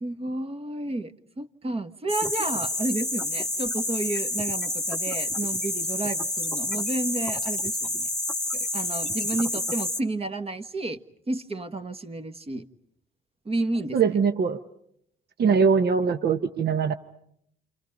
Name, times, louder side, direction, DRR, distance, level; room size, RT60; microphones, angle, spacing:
voice 1, 0.0-8.1 8.5-11.0 11.3-12.7 13.4-14.0, right 2 dB, 30° right, 10 dB, 1.4 m, -31 dB
sound 1, 2.1-10.0, left 1 dB, ahead, 1.4 m, -29 dB
voice 2, 13.9-14.6 15.4-16.9, right 5 dB, 55° right, 9 dB, 1.0 m, -22 dB
28.5 x 28.0 x 5.3 m, 0.70 s
cardioid pair, 90°, 20 cm